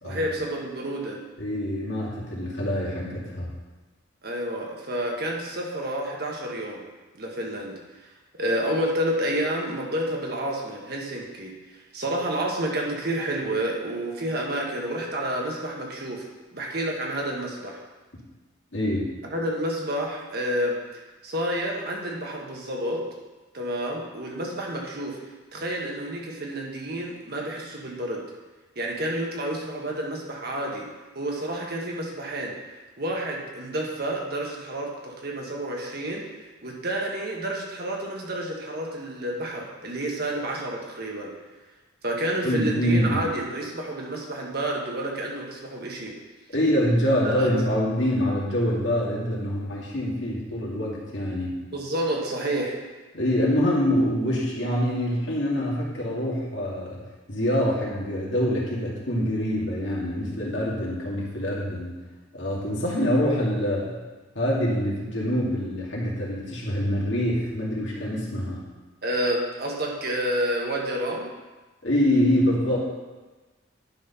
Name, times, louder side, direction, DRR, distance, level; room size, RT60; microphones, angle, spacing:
voice 1, 0.0-1.2 4.2-6.8 7.2-8.0 8.4-11.5 11.9-16.2 16.5-17.8 19.2-20.8 21.2-23.0 23.5-25.2 25.5-28.2 28.7-30.8 31.1-32.5 33.0-36.2 36.6-41.3 42.0-46.1 47.2-47.5 51.7-52.8 69.0-71.3, right 1 dB, 50° right, -1 dB, 1.4 m, -29 dB
voice 2, 1.4-3.5 18.7-19.1 42.4-43.2 46.5-51.6 53.1-57.0 57.3-62.0 62.3-64.0 64.4-68.6 71.8-72.8, equal, 70° left, -5 dB, 2.2 m, -25 dB
10.5 x 4.3 x 5.6 m, 1.2 s
head